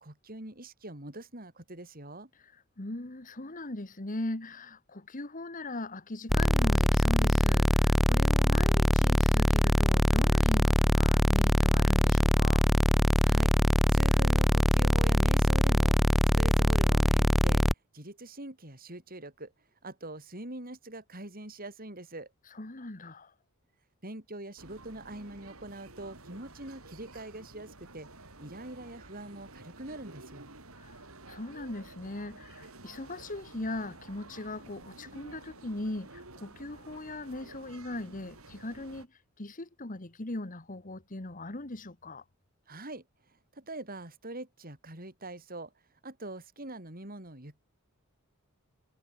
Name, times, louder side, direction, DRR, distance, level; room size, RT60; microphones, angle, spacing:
voice 1, 0.0-2.3 13.2-13.5 13.9-17.6 17.9-19.5 19.8-22.3 24.0-28.1 28.4-30.5 42.7-45.7 46.0-47.6, right 1 dB, 40° right, 5.6 m, -43 dB
voice 2, 2.4-12.6 22.5-23.3 30.8-42.2, left 2 dB, 35° left, 1.5 m, -39 dB
sound 1, 6.3-17.7, equal, ahead, 0.8 m, -23 dB
sound 2, 24.6-39.1, right 2 dB, 65° right, 5.3 m, -51 dB
head